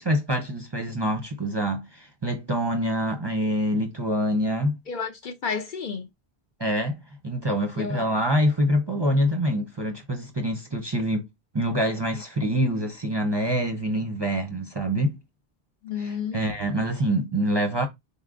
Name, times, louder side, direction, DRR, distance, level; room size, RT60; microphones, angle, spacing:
voice 1, 0.0-4.8 6.6-7.0 7.2-11.3 11.5-15.2 16.0-17.9, equal, 30° right, 0.6 m, -25 dB
voice 2, 4.9-6.1 7.8-8.1 15.8-16.4, left 6 dB, 60° left, 0.7 m, -31 dB
4.1 x 3.6 x 2.4 m
omnidirectional pair, 1.1 m